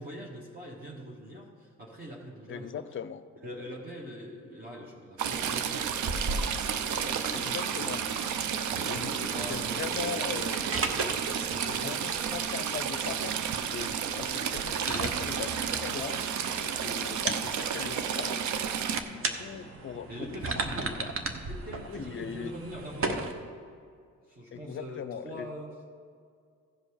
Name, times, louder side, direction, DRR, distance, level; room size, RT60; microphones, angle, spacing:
voice 1, 0.0-2.9 3.4-5.9 6.8-8.0 8.7-10.5 11.6-12.1 20.1-21.0 21.3-23.5 24.3-25.9, equal, 30° right, -3 dB, 1.5 m, -43 dB
voice 2, 2.5-3.2 7.3-8.1 8.9-10.6 11.6-16.2 16.6-18.5 19.1-20.7 21.0-21.1 21.8-22.5 24.5-25.5, left 8 dB, 45° left, 13 dB, 0.5 m, -40 dB
sound 1, 5.2-23.3, right 3 dB, 45° right, 1.0 m, -38 dB
Stream / Trickle dribble, 5.2-19.0, right 8 dB, 70° right, 0.7 m, -32 dB
15.5 x 5.2 x 4.9 m, 2.2 s
cardioid pair, 90°, 30 cm